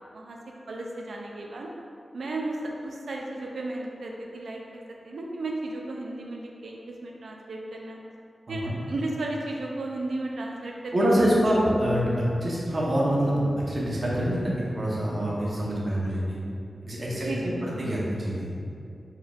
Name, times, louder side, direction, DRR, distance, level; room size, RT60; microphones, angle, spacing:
voice 1, 0.7-1.7 2.1-8.0 8.5-11.3 17.1-17.7, right 2 dB, 85° right, -1 dB, 0.4 m, -34 dB
voice 2, 10.9-12.1 12.4-16.4 16.8-18.5, equal, 40° right, -6 dB, 0.8 m, -25 dB
4.3 x 3.5 x 2.4 m, 2.5 s
wide cardioid pair, 110°, 0 cm